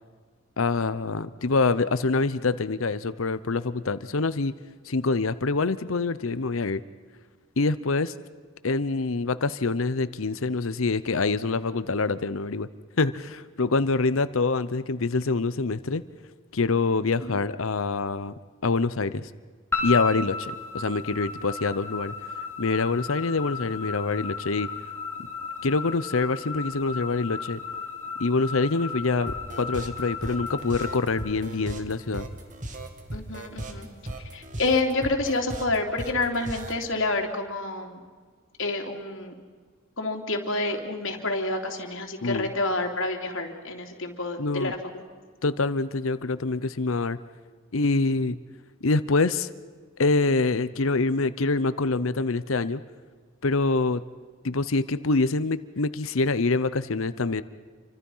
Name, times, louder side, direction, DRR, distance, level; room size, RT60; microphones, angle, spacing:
voice 1, 0.6-4.5 4.8-6.8 7.6-8.1 8.6-12.7 13.0-16.0 16.5-19.3 19.8-22.1 22.6-24.7 25.6-27.6 28.2-32.3 42.2-42.5 44.4-44.7 45.4-47.2 47.7-48.4 48.8-49.5 50.0-52.8 53.4-54.0 54.4-57.4, left 3 dB, 85° left, 14 dB, 0.9 m, -25 dB
sound 1, 19.7-32.0, left 5 dB, 10° left, 3.8 m, -34 dB
sound 2, 29.3-36.8, right 1 dB, 40° right, 2.3 m, -37 dB
voice 2, 33.1-33.9 34.3-38.0 38.6-39.3 40.0-45.0, left 2 dB, 70° left, 2 dB, 3.2 m, -28 dB
29.0 x 25.0 x 5.7 m, 1.5 s
head